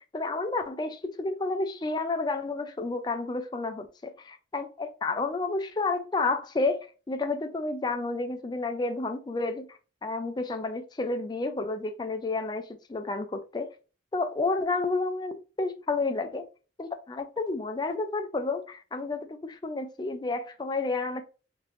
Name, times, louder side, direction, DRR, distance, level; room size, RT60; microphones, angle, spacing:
voice 1, 0.1-13.7 14.1-16.5 16.8-21.2, left 3 dB, 25° left, 0.3 m, -31 dB
3.0 x 2.6 x 3.0 m
head